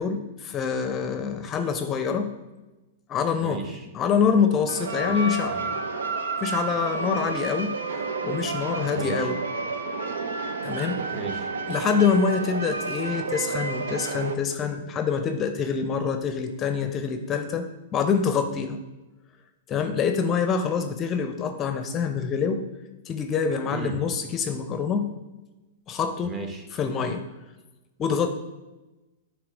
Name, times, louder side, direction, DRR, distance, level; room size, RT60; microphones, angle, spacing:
voice 1, 0.0-2.3 3.1-3.6 3.9-5.6 6.4-7.7 8.2-9.4 10.6-11.1 11.7-18.8 19.7-22.7 23.1-25.1 25.9-26.3 26.7-27.2 28.0-28.3, left 6 dB, 30° left, 7 dB, 0.6 m, -25 dB
voice 2, 3.4-3.9 5.0-5.7 9.0-9.3 11.1-11.5 23.7-24.0 26.2-26.6, right 4 dB, 25° right, 5 dB, 1.1 m, -35 dB
sound 1, 4.7-14.3, right 4 dB, 75° right, 0.6 m, -30 dB
7.9 x 3.1 x 5.2 m, 1.1 s
hypercardioid pair, 115°, 0 cm